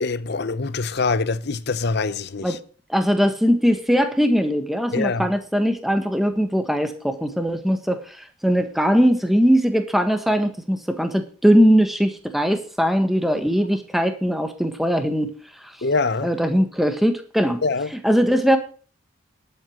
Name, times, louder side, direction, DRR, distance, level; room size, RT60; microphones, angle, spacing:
voice 1, 0.0-2.6 4.9-5.3 15.8-16.3 17.6-17.9, left 3 dB, 50° left, 0.7 m, -24 dB
voice 2, 2.9-15.3 16.2-17.6 18.0-18.6, equal, ahead, 1.4 m, -20 dB
11.5 x 7.8 x 6.5 m
head